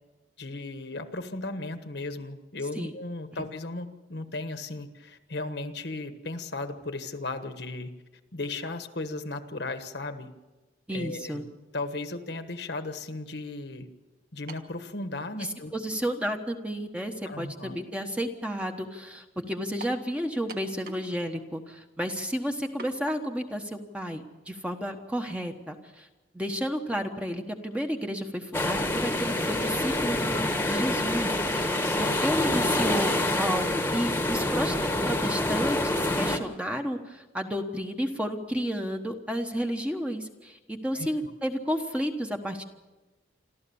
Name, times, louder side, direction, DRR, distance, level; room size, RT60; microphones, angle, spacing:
voice 1, 0.4-8.0 8.3-10.3 10.9-11.4 11.7-13.9 14.3-16.0 17.2-17.8 31.8-32.2 40.9-41.1, left 2 dB, 60° left, 9 dB, 1.3 m, -36 dB
voice 2, 10.9-11.4 15.7-26.1 26.3-33.1 33.4-34.7 35.0-42.6, equal, 5° right, 4 dB, 1.2 m, -32 dB
sound 1, 14.5-14.8 15.7-15.8 19.8-20.0 20.5-21.1 21.4-21.5 22.8-23.0, right 3 dB, 50° right, 1.6 m, -43 dB
sound 2, 28.5-36.4, left 1 dB, 10° left, 1.3 m, -27 dB
27.0 x 13.5 x 7.1 m, 1.1 s
head